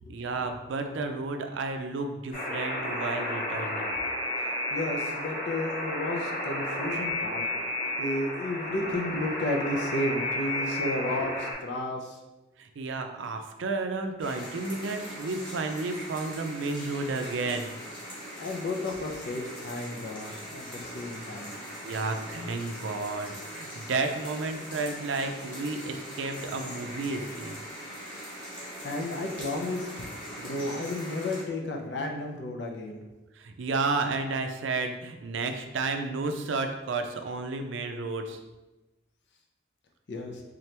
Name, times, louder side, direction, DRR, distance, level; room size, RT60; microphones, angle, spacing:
voice 1, 0.1-4.0 12.6-18.0 21.8-27.6 33.4-38.4, right 3 dB, 75° right, 6 dB, 0.4 m, -32 dB
Alarm, 2.3-11.5, left 1 dB, 45° left, 1.3 m, -32 dB
voice 2, 4.7-7.7 8.0-12.2 18.4-21.5 28.8-30.0 30.4-33.0 40.1-40.4, left 1 dB, 60° left, 1 dB, 0.5 m, -32 dB
sound 1, 14.2-31.4, equal, 25° left, 1.0 m, -41 dB
3.7 x 2.9 x 3.3 m, 1.1 s
head